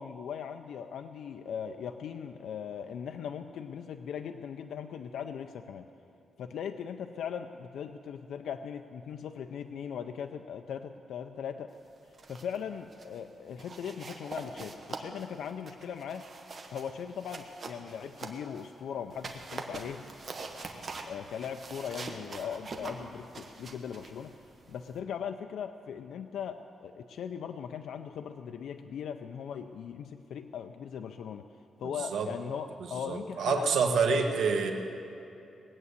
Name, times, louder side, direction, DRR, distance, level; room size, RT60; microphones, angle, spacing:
voice 1, 0.0-5.8 6.4-11.7 12.3-16.2 16.7-20.1 21.1-24.3 24.7-31.5 31.8-33.8 34.0-34.2, left 7 dB, 80° left, 6 dB, 0.5 m, -39 dB
sound 1, 12.0-12.6 12.9-13.2 13.6-18.7 19.1-25.0, right 3 dB, 35° right, 1.2 m, -44 dB
voice 2, 32.8-34.7, right 5 dB, 85° right, 4 dB, 1.4 m, -27 dB
19.5 x 8.2 x 8.2 m, 2.7 s
wide cardioid pair, 160°, 0 cm